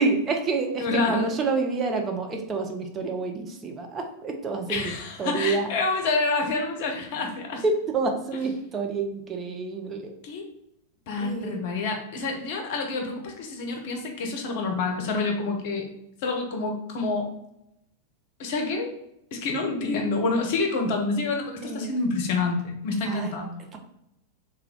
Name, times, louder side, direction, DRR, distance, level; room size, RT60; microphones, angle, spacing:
voice 1, 0.0-4.9 5.2-5.7 7.6-10.1 11.2-11.6 21.6-21.9 23.1-23.3, right 4 dB, 25° right, 3 dB, 0.5 m, -28 dB
voice 2, 0.8-1.4 4.7-7.6 10.2-10.4 11.1-15.9 16.2-17.3 18.4-18.9 19.3-23.6, left 3 dB, 50° left, 3 dB, 0.6 m, -27 dB
3.3 x 2.2 x 3.6 m, 0.81 s
figure-of-eight pair, 90°, 0 cm